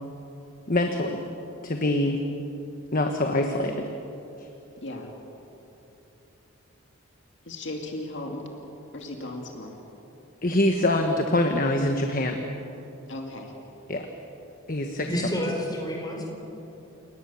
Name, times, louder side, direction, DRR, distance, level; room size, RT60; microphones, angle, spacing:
voice 1, 0.7-1.2 1.6-2.2 2.9-3.8 10.4-12.4 13.9-14.1 14.7-15.1, left 1 dB, 40° left, 4 dB, 1.3 m, -24 dB
voice 2, 4.8-5.1 7.5-8.5 8.9-9.8 13.1-13.5, left 1 dB, 55° left, 1 dB, 2.5 m, -36 dB
voice 3, 15.1-16.2, equal, 20° left, -1 dB, 4.6 m, -29 dB
30.0 x 18.5 x 7.1 m, 3.0 s
head